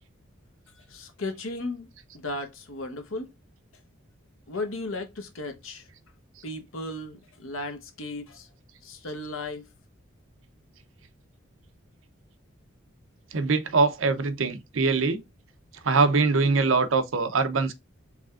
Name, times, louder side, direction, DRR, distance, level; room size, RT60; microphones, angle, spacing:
voice 1, 0.9-1.9 2.1-3.3 4.5-5.9 6.4-8.5 8.8-9.7, left 2 dB, 75° left, 1.0 m, -35 dB
voice 2, 13.3-15.2 15.8-17.7, right 4 dB, 65° right, 0.6 m, -23 dB
4.8 x 3.4 x 2.4 m
head